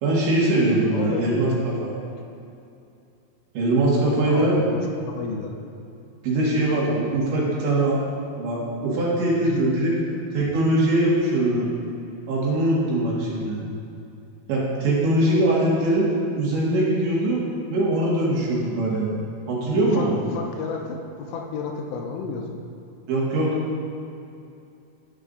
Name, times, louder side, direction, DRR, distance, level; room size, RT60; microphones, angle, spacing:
voice 1, 0.0-1.9 3.6-4.6 6.2-8.0 8.4-9.9 10.3-11.7 12.3-13.6 14.5-16.1 16.4-17.4 17.7-19.1 19.5-20.2 23.1-23.6, right 1 dB, 70° right, -5 dB, 3.7 m, -22 dB
voice 2, 0.9-1.5 4.3-5.5 9.4-9.6 19.8-22.6, left 4 dB, 80° left, 1 dB, 3.1 m, -32 dB
16.0 x 8.9 x 2.6 m, 2.6 s
omnidirectional pair, 5.9 m